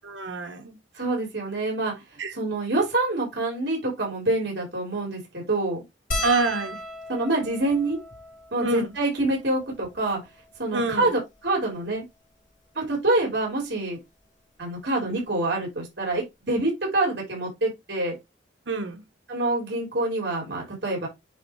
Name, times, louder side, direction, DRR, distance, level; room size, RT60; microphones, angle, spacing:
voice 1, 0.0-0.8 2.2-2.3 6.2-6.8 8.6-8.9 10.7-11.1 18.7-19.0, right 3 dB, 85° right, 1.2 m, -26 dB
voice 2, 0.9-1.9 2.3-5.8 7.1-8.0 8.5-10.2 10.6-12.0 12.7-14.0 14.6-18.2 19.3-21.1, right 2 dB, 65° right, 4.2 m, -26 dB
sound 1, 6.1-10.7 11.5-11.6 11.7-11.9 13.2-13.4 14.9-15.0 15.2-15.4, left 1 dB, 45° left, 2.0 m, -37 dB
9.8 x 3.7 x 3.2 m
head